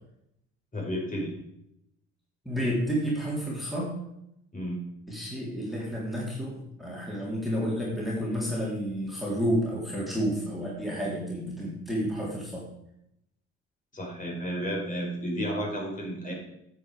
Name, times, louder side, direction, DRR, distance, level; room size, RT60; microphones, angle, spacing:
voice 1, 0.7-1.3 4.5-4.8 13.9-16.3, equal, 25° left, -2 dB, 4.5 m, -32 dB
voice 2, 2.5-3.9 5.1-12.7, equal, ahead, -5 dB, 3.6 m, -30 dB
9.4 x 7.8 x 5.0 m, 0.79 s
hypercardioid pair, 65°, 31 cm